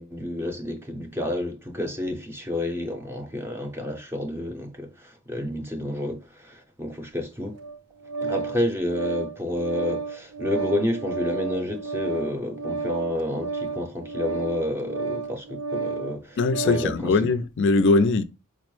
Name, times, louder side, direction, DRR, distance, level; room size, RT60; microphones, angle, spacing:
voice 1, 0.0-7.5 8.2-16.4 16.6-17.2, left 1 dB, 10° right, 0.6 m, -30 dB
Organ, 7.6-17.0, right 4 dB, 75° right, 0.5 m, -32 dB
voice 2, 16.4-18.2, left 3 dB, 55° left, 0.4 m, -21 dB
4.5 x 2.0 x 3.0 m
head